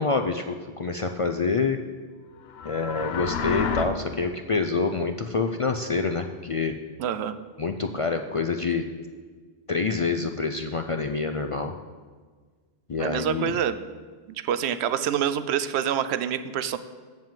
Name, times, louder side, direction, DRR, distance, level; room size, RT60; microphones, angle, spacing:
voice 1, 0.0-1.8 2.6-6.7 7.6-8.8 9.7-11.7 12.9-13.5, left 4 dB, 50° left, 6 dB, 0.4 m, -27 dB
sound 1, 2.5-3.8, left 6 dB, 70° left, 0.9 m, -29 dB
voice 2, 7.0-7.4 13.0-13.8 14.4-16.8, right 9 dB, 80° right, 13 dB, 0.8 m, -26 dB
7.5 x 7.4 x 7.4 m, 1.5 s
omnidirectional pair, 1.1 m